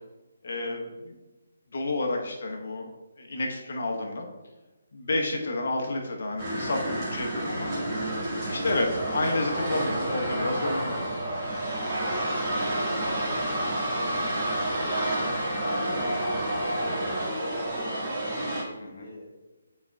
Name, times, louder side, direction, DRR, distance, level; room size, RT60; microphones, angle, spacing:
voice 1, 0.4-1.2 1.7-2.9 3.2-4.3 4.9-7.7 8.5-11.0 15.9-16.1 18.8-19.0, left 2 dB, 55° left, 2 dB, 1.0 m, -30 dB
sound 1, 6.4-18.6, right 1 dB, 25° right, 1.9 m, -29 dB
voice 2, 12.3-15.2 15.5-19.3, left 1 dB, 25° left, -13 dB, 1.8 m, -43 dB
9.5 x 4.3 x 2.3 m, 1.1 s
figure-of-eight pair, 145°, 0 cm